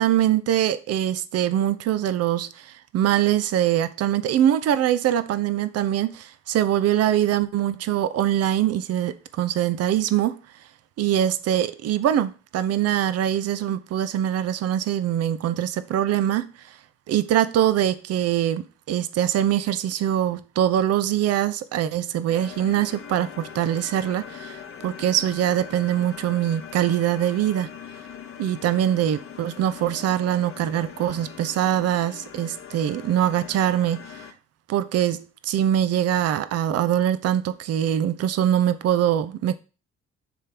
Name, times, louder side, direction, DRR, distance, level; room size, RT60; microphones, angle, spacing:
voice 1, 0.0-10.4 11.0-16.5 17.1-27.7 28.4-34.0 34.7-39.6, right 11 dB, 50° right, 0.7 m, -23 dB
sound 1, 22.3-34.3, left 8 dB, 40° left, 1.0 m, -41 dB
6.9 x 3.3 x 5.9 m
hypercardioid pair, 50°, 33 cm